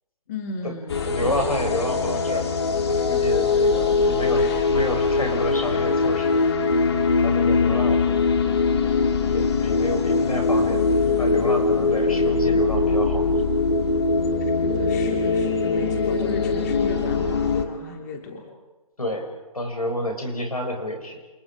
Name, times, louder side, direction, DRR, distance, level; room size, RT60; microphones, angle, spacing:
voice 1, 0.3-1.4 3.9-4.7 14.4-18.5, left 4 dB, 30° left, 1 dB, 2.9 m, -35 dB
sound 1, 0.9-17.6, left 4 dB, 45° left, 2.6 m, -22 dB
voice 2, 1.0-2.5 2.9-6.5 7.2-8.0 9.0-13.2 19.0-19.3 19.5-21.2, left 1 dB, 75° left, 4 dB, 7.0 m, -29 dB
30.0 x 28.5 x 5.1 m, 1.2 s
figure-of-eight pair, 140°, 19 cm